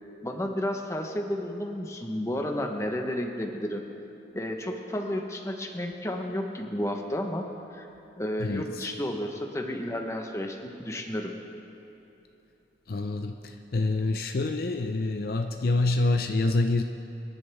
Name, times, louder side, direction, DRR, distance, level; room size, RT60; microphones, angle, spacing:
voice 1, 0.2-3.8 4.3-7.9 8.2-11.3, left 1 dB, 15° left, 3 dB, 1.0 m, -32 dB
voice 2, 8.4-8.9 12.9-16.8, left 2 dB, 55° left, 6 dB, 0.5 m, -27 dB
25.0 x 11.0 x 3.5 m, 3.0 s
head